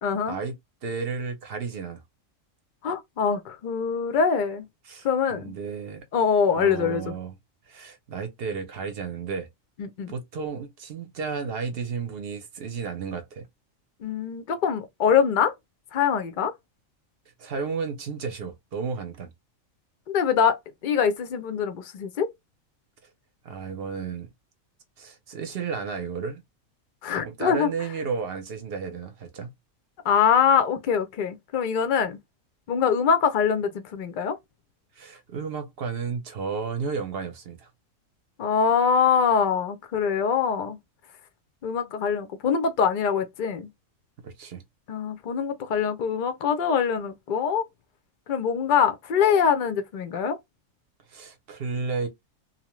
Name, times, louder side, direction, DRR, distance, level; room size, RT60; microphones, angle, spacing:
voice 1, 0.0-0.4 2.8-4.7 5.0-5.5 6.1-7.2 9.8-10.1 14.0-15.5 15.9-16.5 20.1-20.6 20.8-22.3 27.0-27.7 30.0-32.2 32.7-34.4 38.4-40.8 41.6-43.7 44.9-47.7 48.3-50.4, left 7 dB, 65° left, 0.5 m, -23 dB
voice 2, 0.8-2.0 4.8-6.0 6.5-7.3 7.7-9.5 10.1-13.5 17.4-19.3 23.4-24.3 25.0-26.4 27.1-29.5 35.0-37.7 44.2-44.6 51.1-52.1, right 5 dB, 55° right, 0.7 m, -33 dB
2.8 x 2.1 x 3.0 m
omnidirectional pair, 1.4 m